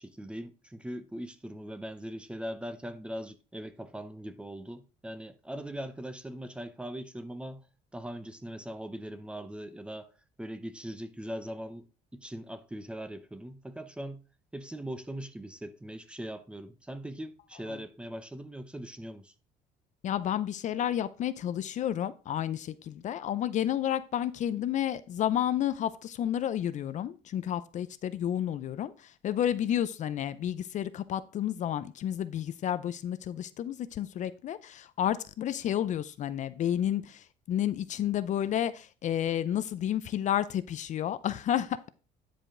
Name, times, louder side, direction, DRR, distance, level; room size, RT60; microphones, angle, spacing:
voice 1, 0.0-7.6 7.9-10.1 10.4-14.2 14.5-19.3, equal, 5° right, 0.8 m, -40 dB
voice 2, 20.0-41.9, left 10 dB, 50° left, 0.6 m, -31 dB
9.9 x 5.1 x 3.8 m
cardioid pair, 140°, 16 cm